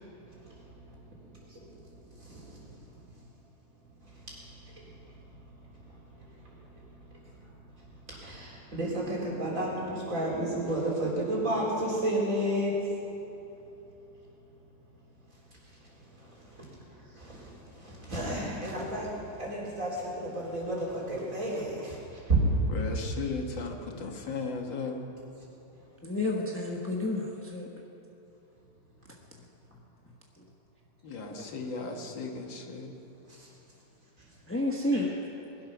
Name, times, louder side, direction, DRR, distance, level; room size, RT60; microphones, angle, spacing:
voice 1, 0.3-0.9 1.3-1.8 2.2-2.8 4.0-4.8 5.9-6.8 7.2-7.3 7.8-12.7 15.8-16.7 17.1-19.1 19.4-22.4 33.3-33.5 34.9-35.0, right 1 dB, 45° right, -5 dB, 4.2 m, -33 dB
voice 2, 22.7-25.1 31.0-32.9, left 4 dB, 80° left, 2 dB, 2.2 m, -36 dB
voice 3, 26.0-27.7 34.5-35.1, left 1 dB, 10° left, -1 dB, 0.7 m, -30 dB
21.0 x 11.5 x 6.0 m, 3.0 s
omnidirectional pair, 2.0 m